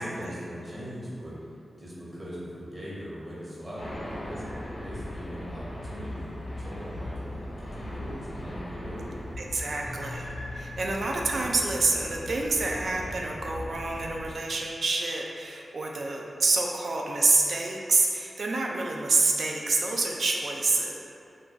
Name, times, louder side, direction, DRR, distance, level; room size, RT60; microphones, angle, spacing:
voice 1, 0.0-1.4 1.8-4.4 4.7-9.1, equal, 40° right, -8 dB, 1.1 m, -40 dB
sound 1, 3.8-14.3, left 1 dB, 75° left, 0.7 m, -39 dB
voice 2, 9.4-21.0, right 3 dB, 75° right, -1 dB, 0.4 m, -27 dB
Keyboard (musical), 9.8-12.8, left 4 dB, 35° left, 0.3 m, -46 dB
2.5 x 2.3 x 3.7 m, 2.6 s
cardioid pair, 70°, 0 cm